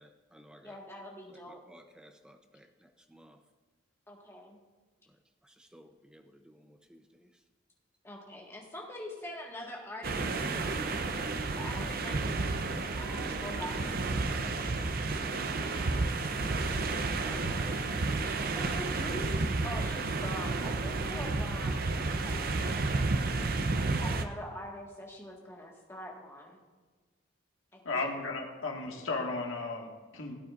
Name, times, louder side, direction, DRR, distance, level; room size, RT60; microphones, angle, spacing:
voice 1, 0.0-0.8 1.3-3.4 5.4-7.3, equal, 5° right, 6 dB, 0.6 m, -57 dB
voice 2, 0.6-1.6 4.1-4.6 8.0-10.8 11.6-12.5 13.0-15.9 16.4-17.0 17.3-17.9 18.5-19.3 19.6-22.5 23.8-26.6 27.7-28.1, left 1 dB, 10° left, -2 dB, 1.6 m, -44 dB
sound 1, 10.0-24.3, right 3 dB, 45° right, 0.6 m, -31 dB
voice 3, 27.9-30.4, left 3 dB, 70° left, 0 dB, 1.8 m, -35 dB
17.0 x 8.7 x 2.5 m, 1.4 s
head